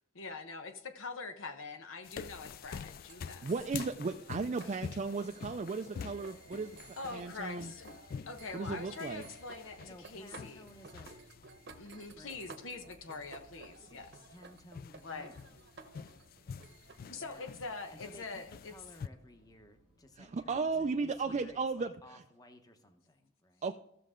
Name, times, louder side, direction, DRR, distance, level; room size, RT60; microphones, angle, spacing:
voice 1, 0.1-3.5 4.6-4.7 7.0-7.9 8.2-10.6 11.8-14.1 15.0-15.3 17.0-18.7 20.7-21.0, left 4 dB, 90° left, 7 dB, 1.0 m, -44 dB
sound 1, 2.0-19.1, left 6 dB, 50° left, 0.3 m, -47 dB
sound 2, 3.1-19.4, right 4 dB, 60° right, 1.0 m, -55 dB
voice 2, 3.4-7.7 8.5-9.2 20.2-22.2 23.6-23.7, right 4 dB, 35° right, 6 dB, 0.4 m, -35 dB
sound 3, 6.3-21.7, left 1 dB, 75° left, 1.9 m, -67 dB
voice 3, 9.8-11.1 12.2-12.6 13.8-14.0 14.3-15.6 17.1-17.5 17.9-23.7, left 1 dB, 20° left, 6 dB, 0.9 m, -56 dB
15.0 x 6.6 x 3.7 m, 0.81 s
head